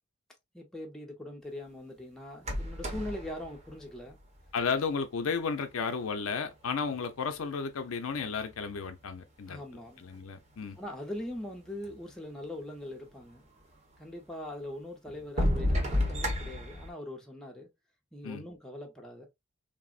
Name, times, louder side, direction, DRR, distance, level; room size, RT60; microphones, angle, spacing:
voice 1, 0.5-4.2 9.5-10.0 10.8-13.4 14.0-17.7 18.1-19.3, left 1 dB, 5° left, 0.6 m, -41 dB
sound 1, 2.4-4.7 5.7-5.8 6.4-7.6 8.2-9.1 9.9-10.0 10.1-10.2 10.9-11.0 11.2-12.0 13.6-13.7 14.3-14.4 15.1-16.9, left 1 dB, 35° right, 0.8 m, -32 dB
voice 2, 4.5-9.6 10.0-10.8 18.2-18.4, left 5 dB, 85° left, 0.5 m, -33 dB
3.4 x 2.0 x 2.3 m
head